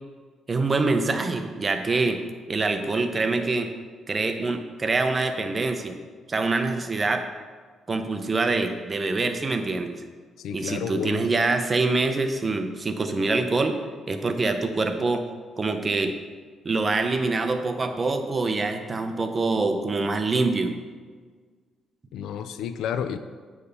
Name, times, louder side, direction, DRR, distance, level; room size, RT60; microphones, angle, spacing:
voice 1, 0.5-2.2 2.5-3.7 4.1-6.0 6.3-7.2 7.9-10.0 10.5-13.8 14.1-15.2 15.6-16.1 16.6-20.8, right 3 dB, 30° right, 7 dB, 0.7 m, -25 dB
voice 2, 10.4-11.3 22.1-23.2, left 8 dB, 85° left, 11 dB, 0.4 m, -31 dB
8.3 x 3.4 x 5.5 m, 1.5 s
cardioid pair, 90°, 0 cm